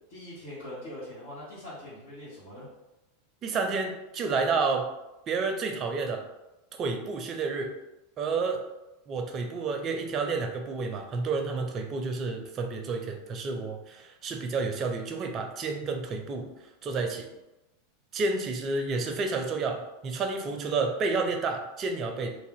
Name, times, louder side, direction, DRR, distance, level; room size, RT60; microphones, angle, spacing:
voice 1, 0.1-2.7, left 1 dB, 65° left, -11 dB, 1.3 m, -42 dB
voice 2, 3.4-4.9 5.3-6.3 6.8-7.7 8.2-8.6 9.1-17.3 18.1-22.4, right 4 dB, 35° right, 5 dB, 0.5 m, -30 dB
2.6 x 2.1 x 3.5 m, 0.99 s
hypercardioid pair, 100°, 0 cm